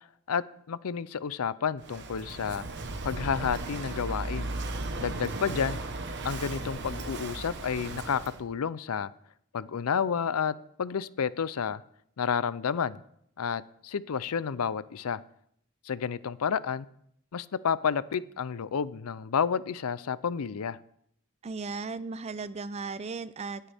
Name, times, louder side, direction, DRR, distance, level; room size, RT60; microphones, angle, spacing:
voice 1, 0.3-2.6 3.0-4.5 5.0-5.8 6.2-9.1 9.5-11.8 12.2-13.0 13.4-15.2 15.9-16.9 17.3-20.8, left 6 dB, 80° left, 18 dB, 0.5 m, -30 dB
Walk footsteps / Wind / Waves surf, 1.8-8.4, right 2 dB, 50° right, 1.2 m, -36 dB
voice 2, 21.4-23.6, right 4 dB, 30° right, 16 dB, 0.4 m, -36 dB
19.0 x 9.1 x 3.5 m, 0.71 s
head